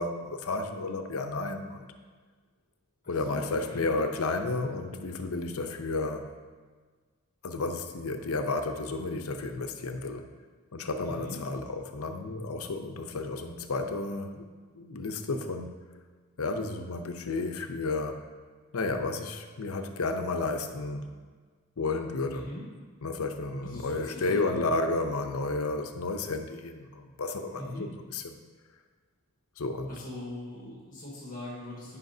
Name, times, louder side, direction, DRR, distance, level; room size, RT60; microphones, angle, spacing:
voice 1, 0.0-1.9 3.1-6.3 7.4-10.3 10.7-14.4 14.7-15.7 16.4-18.3 18.7-21.1 21.8-22.5 23.0-28.4 29.6-29.9, left 3 dB, 75° left, 6 dB, 0.7 m, -32 dB
voice 2, 3.2-3.9 11.0-11.4 22.3-22.6 23.6-24.7 27.6-27.9 29.9-32.0, left 1 dB, 35° left, -6 dB, 1.7 m, -41 dB
13.5 x 5.7 x 2.7 m, 1.5 s
head